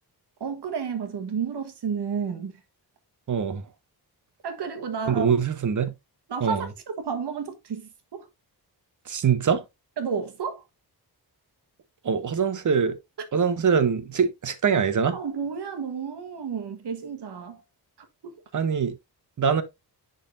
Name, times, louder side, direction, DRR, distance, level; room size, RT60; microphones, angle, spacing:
voice 1, 0.4-2.5 4.4-5.3 6.3-6.7 7.0-8.3 10.0-10.6 15.1-17.6 18.2-18.4, right 6 dB, 85° right, 1.4 m, -31 dB
voice 2, 3.3-3.7 5.1-5.9 6.4-6.7 9.1-9.6 12.0-13.0 13.3-15.2 18.5-18.9 19.4-19.6, right 6 dB, 50° right, 0.8 m, -23 dB
10.5 x 4.0 x 2.6 m
wide cardioid pair, 160°, 39 cm